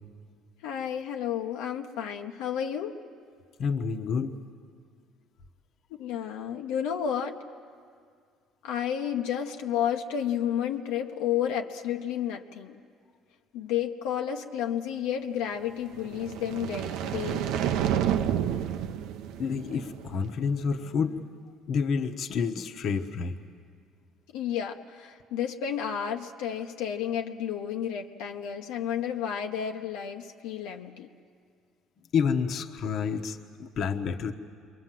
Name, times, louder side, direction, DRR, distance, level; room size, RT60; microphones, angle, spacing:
voice 1, 0.6-2.9 6.0-7.4 8.6-12.8 13.5-17.6 24.3-31.1, left 9 dB, 90° left, 2 dB, 1.1 m, -31 dB
voice 2, 3.6-4.3 19.4-21.2 21.7-23.3 32.1-34.3, left 6 dB, 55° left, 5 dB, 1.2 m, -29 dB
sound 1, 15.9-20.2, right 10 dB, 75° right, 0.8 m, -30 dB
28.0 x 23.0 x 7.6 m, 2.2 s
cardioid pair, 120°, 0 cm